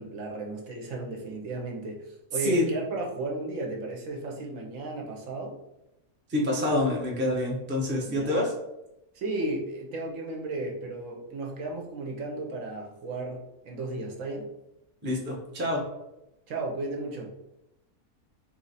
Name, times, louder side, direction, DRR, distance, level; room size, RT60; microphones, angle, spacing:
voice 1, 0.0-5.5 8.0-8.3 9.1-14.4 16.5-17.3, right 2 dB, 65° right, 0 dB, 1.0 m, -34 dB
voice 2, 6.3-8.5 15.0-15.8, left 1 dB, 10° right, -3 dB, 0.5 m, -27 dB
3.2 x 3.1 x 4.0 m, 0.90 s
omnidirectional pair, 1.6 m